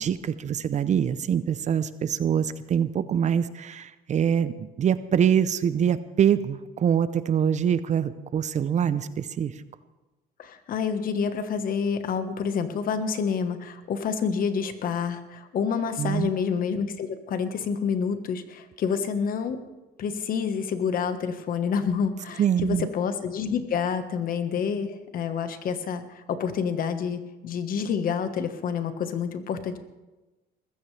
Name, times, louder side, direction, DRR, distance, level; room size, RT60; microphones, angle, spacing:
voice 1, 0.0-9.5 16.0-16.3 22.4-22.9, right 8 dB, 45° right, 14 dB, 0.7 m, -24 dB
voice 2, 10.4-19.6 20.0-29.8, left 6 dB, 55° left, 9 dB, 1.4 m, -28 dB
20.5 x 15.0 x 3.4 m, 1.1 s
cardioid pair, 110°, 17 cm